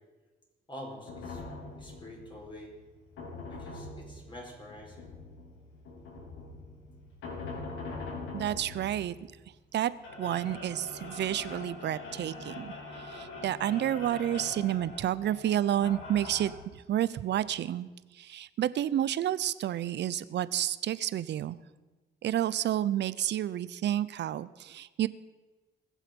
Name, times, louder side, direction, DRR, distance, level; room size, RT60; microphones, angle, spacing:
voice 1, 0.7-1.4 1.7-2.7 3.5-5.1, left 1 dB, 25° left, -2 dB, 5.0 m, -46 dB
sound 1, 1.1-16.5, left 3 dB, 85° left, 3.6 m, -43 dB
voice 2, 8.3-9.2 9.7-9.9 10.2-16.5 16.9-17.9 18.1-21.6 22.2-25.1, right 11 dB, 60° right, 17 dB, 0.6 m, -30 dB
21.0 x 7.4 x 5.3 m, 1.2 s
cardioid pair, 90°, 20 cm